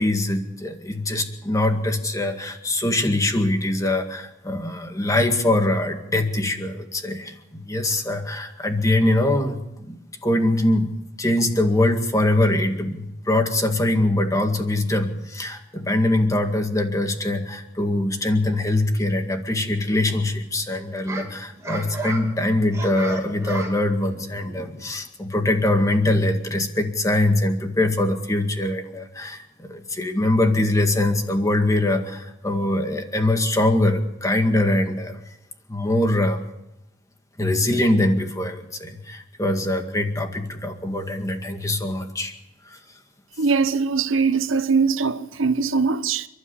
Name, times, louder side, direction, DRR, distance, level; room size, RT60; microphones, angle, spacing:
voice 1, 0.0-10.9 11.2-35.2 35.7-36.4 37.4-42.3 42.7-42.8, left 1 dB, 15° left, 2.0 m, -23 dB
sound 1, 19.6-20.4 20.8-25.1, right 2 dB, 15° right, 3.2 m, -35 dB
voice 2, 43.4-46.3, right 5 dB, 85° right, 1.0 m, -21 dB
29.0 x 12.0 x 8.5 m
head